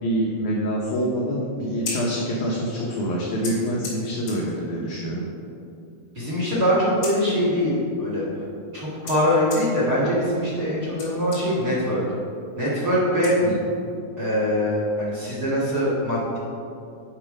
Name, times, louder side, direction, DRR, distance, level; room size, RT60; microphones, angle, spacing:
voice 1, 0.0-5.2 13.4-13.6, equal, 80° left, -4 dB, 1.8 m, -26 dB
Scissors, 1.6-14.0, left 3 dB, 45° left, 1.8 m, -42 dB
voice 2, 6.1-8.2 8.7-12.0 12.5-13.4 14.2-16.4, equal, 45° right, -6 dB, 1.2 m, -23 dB
9.3 x 5.1 x 4.8 m, 2.6 s
omnidirectional pair, 4.6 m